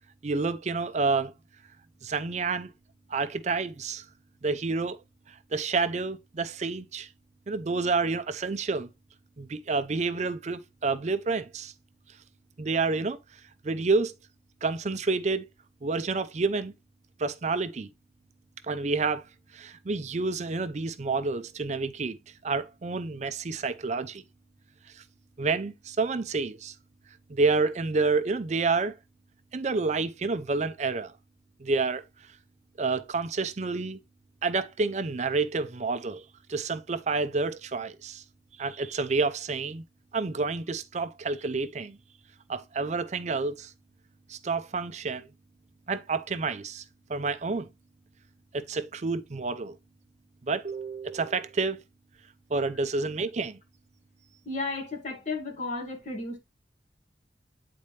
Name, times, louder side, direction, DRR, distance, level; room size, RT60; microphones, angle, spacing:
voice 1, 0.2-1.3 2.0-2.7 3.1-4.0 4.4-5.0 5.3-7.1 7.5-8.9 9.4-11.7 12.6-13.2 13.6-14.1 14.6-15.5 15.8-16.7 17.2-17.9 18.7-19.2 19.5-22.2 22.4-24.2 25.0-25.1 25.4-26.7 27.3-28.9 29.5-31.1 31.6-32.0 32.8-34.0 34.4-36.2 36.5-38.2 38.6-39.8 40.1-42.0 42.5-43.7 44.3-45.3 45.9-46.8 47.1-47.7 48.5-49.8 50.5-51.8 52.5-53.6, right 4 dB, 40° right, 0.5 m, -29 dB
voice 2, 54.5-56.4, left 3 dB, 45° left, 2.3 m, -33 dB
9.0 x 4.2 x 3.2 m
head